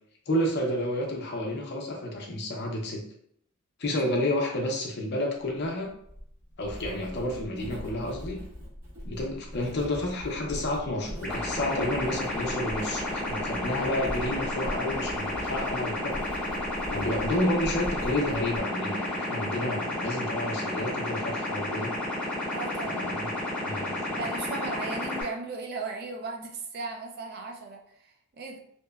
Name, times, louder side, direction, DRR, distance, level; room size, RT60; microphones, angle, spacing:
voice 1, 0.3-3.0 3.8-5.9 6.6-8.4 9.0-16.4 16.9-21.9 22.8-23.3 23.6-24.1, left 1 dB, 50° left, 0 dB, 0.5 m, -30 dB
Writing, 5.8-18.6, equal, 75° right, 1.2 m, -41 dB
sound 1, 11.2-25.2, left 1 dB, 5° left, 0.7 m, -32 dB
voice 2, 22.5-23.2 24.2-28.6, right 3 dB, 45° right, 2 dB, 0.4 m, -37 dB
2.8 x 2.1 x 2.2 m, 0.67 s
head